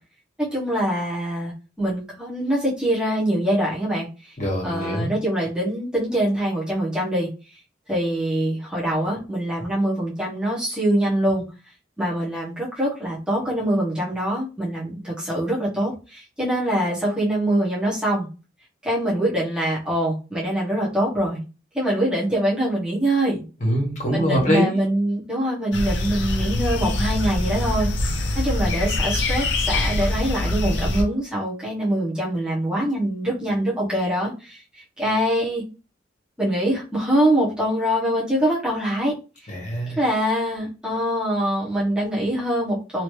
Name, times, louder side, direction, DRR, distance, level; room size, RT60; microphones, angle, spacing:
voice 1, 0.4-1.5 1.8-4.1 4.6-7.3 7.9-11.4 12.0-18.3 18.8-21.4 21.7-23.4 24.1-27.9 28.3-34.6 35.0-35.6 36.4-39.1 40.0-43.0, right 1 dB, 5° right, -7 dB, 1.2 m, -24 dB
voice 2, 4.4-5.2 23.6-24.8 39.5-40.0, equal, 40° left, -1 dB, 1.4 m, -23 dB
sound 1, 25.7-31.0, left 1 dB, 70° left, 0.6 m, -24 dB
3.0 x 3.0 x 3.1 m, 0.32 s
head